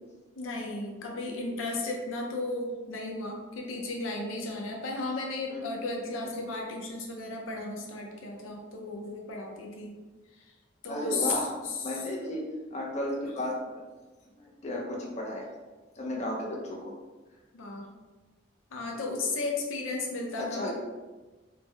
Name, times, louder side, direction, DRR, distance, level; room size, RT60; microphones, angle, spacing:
voice 1, 0.4-9.9 10.4-10.5 10.8-12.0 17.5-17.9 18.7-20.7, left 3 dB, 90° left, 0 dB, 0.6 m, -34 dB
voice 2, 10.9-11.5 11.8-12.4 12.7-13.8 14.4-15.5 16.0-16.9 20.4-20.7, left 1 dB, 35° left, -2 dB, 0.5 m, -33 dB
3.3 x 2.1 x 3.3 m, 1.2 s
head